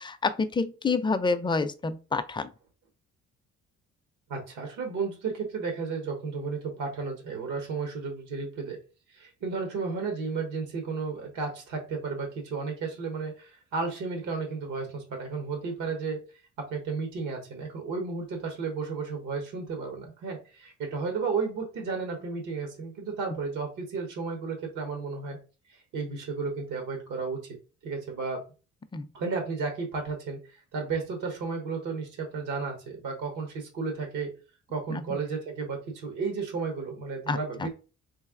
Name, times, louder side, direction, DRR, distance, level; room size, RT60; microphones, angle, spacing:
voice 1, 0.0-2.5 28.9-29.1 34.9-35.2 37.3-37.7, left 4 dB, 15° left, 0.4 m, -28 dB
voice 2, 4.3-8.8 9.1-16.2 16.6-25.4 25.7-27.6 27.8-28.4 29.1-34.3 34.7-37.7, right 4 dB, 85° right, 1.2 m, -33 dB
3.2 x 2.7 x 3.6 m
cardioid pair, 90°, 30 cm